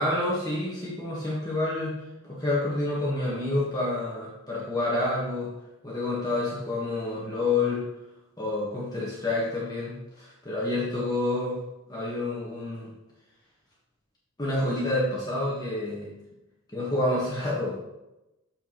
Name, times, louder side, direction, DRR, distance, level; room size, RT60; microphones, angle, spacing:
voice 1, 0.0-2.0 2.2-5.5 5.8-7.8 8.4-11.6 11.9-12.9 14.4-16.1 16.7-17.8, left 2 dB, 15° left, -6 dB, 1.5 m, -28 dB
7.0 x 6.4 x 3.1 m, 0.96 s
head